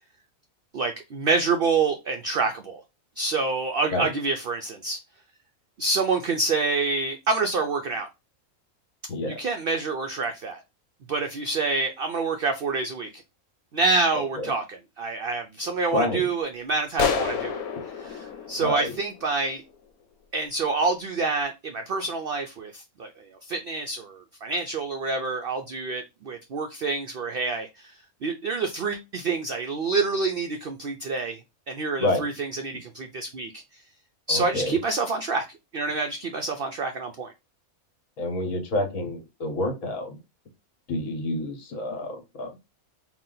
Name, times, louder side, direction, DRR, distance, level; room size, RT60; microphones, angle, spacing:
voice 1, 0.7-2.8 3.2-5.0 5.8-8.1 9.3-10.6 11.1-13.2 13.7-17.6 18.0-19.6 20.3-23.1 23.5-27.9 28.2-31.4 31.7-33.6 34.3-35.4 35.7-37.3, right 3 dB, 70° right, 0.5 m, -27 dB
voice 2, 9.1-9.4 14.1-14.5 15.9-16.3 18.6-18.9 32.0-32.2 34.3-34.8 38.2-40.2 40.9-42.6, left 1 dB, 65° left, 1.4 m, -28 dB
sound 1, 17.0-19.6, left 6 dB, 90° left, 1.1 m, -29 dB
4.1 x 2.3 x 3.8 m
omnidirectional pair, 1.5 m